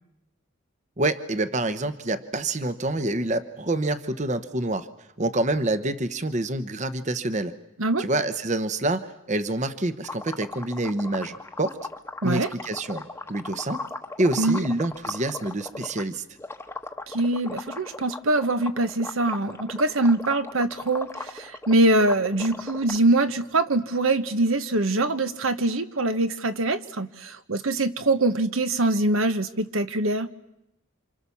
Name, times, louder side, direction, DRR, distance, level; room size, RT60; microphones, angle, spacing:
voice 1, 1.0-4.9 5.2-7.5 8.0-11.8 12.2-13.0 13.3-13.8 14.2-16.2, right 2 dB, 35° right, 11 dB, 0.9 m, -27 dB
sound 1, 10.0-16.0 16.4-23.0, left 2 dB, 10° left, 1.1 m, -37 dB
voice 2, 17.1-30.3, right 2 dB, 80° right, 10 dB, 1.3 m, -23 dB
28.5 x 26.5 x 7.1 m, 0.87 s
head